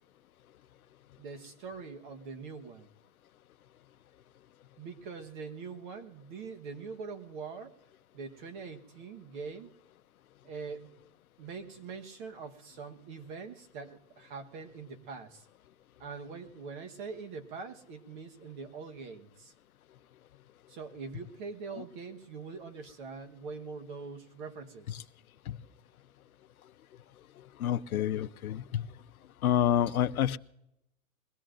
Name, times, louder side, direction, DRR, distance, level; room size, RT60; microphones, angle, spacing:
voice 1, 1.2-2.9 4.8-7.8 8.1-9.7 10.4-10.9 11.4-15.4 16.0-19.5 20.7-25.1, right 5 dB, 35° right, 7 dB, 1.3 m, -43 dB
voice 2, 27.4-28.9 29.4-30.4, left 10 dB, 90° left, 13 dB, 0.8 m, -29 dB
22.0 x 18.0 x 2.6 m, 0.85 s
hypercardioid pair, 160°, 42 cm